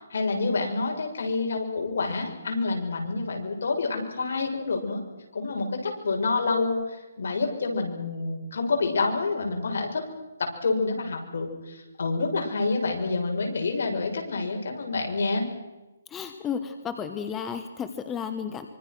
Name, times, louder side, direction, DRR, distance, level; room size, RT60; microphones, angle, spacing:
voice 1, 0.1-5.0 5.3-10.0 10.4-15.5, left 3 dB, 65° left, 3 dB, 6.7 m, -28 dB
voice 2, 16.1-18.7, left 7 dB, 10° left, 8 dB, 1.2 m, -33 dB
26.0 x 25.0 x 6.3 m, 1.1 s
hypercardioid pair, 165°, 0 cm